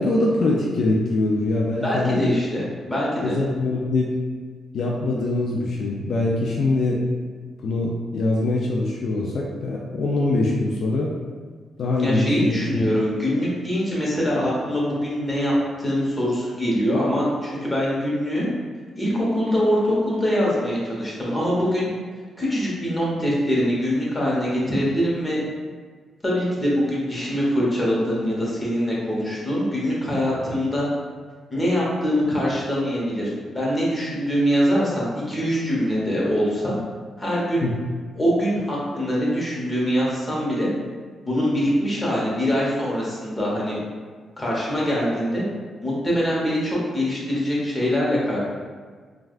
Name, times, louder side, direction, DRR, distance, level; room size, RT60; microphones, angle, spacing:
voice 1, 0.0-2.4 3.2-4.1 4.7-7.0 7.6-11.1 11.8-12.8 37.6-37.7, left 2 dB, 65° left, -2 dB, 0.3 m, -23 dB
voice 2, 1.8-3.4 12.0-18.5 19.0-21.9 22.4-25.4 26.2-30.9 31.5-36.7 37.2-37.7 38.2-40.7 41.2-43.8 44.4-45.4 45.8-48.4, equal, 20° left, -6 dB, 1.0 m, -23 dB
3.3 x 2.3 x 2.4 m, 1.5 s
cardioid pair, 80°, 0 cm